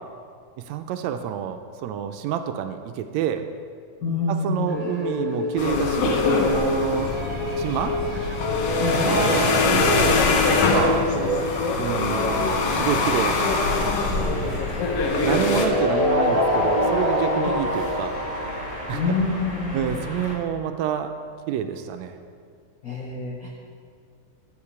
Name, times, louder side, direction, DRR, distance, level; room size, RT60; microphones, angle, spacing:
voice 1, 0.6-3.4 4.3-7.2 7.6-8.0 9.0-11.1 11.8-14.6 15.2-18.2 18.9-19.0 19.7-21.1 21.5-22.2, right 9 dB, 80° right, 8 dB, 1.7 m, -28 dB
voice 2, 4.0-4.9 8.8-9.1 17.4-17.7 18.9-19.9 22.8-23.6, left 3 dB, 90° left, -2 dB, 0.7 m, -27 dB
sound 1, 4.7-19.2, left 1 dB, 25° right, 0.8 m, -27 dB
sound 2, 5.6-15.7, left 4 dB, 65° left, 1.8 m, -23 dB
sound 3, 14.2-20.4, equal, 5° right, 1.5 m, -35 dB
12.0 x 5.0 x 8.5 m, 2.1 s
omnidirectional pair, 3.4 m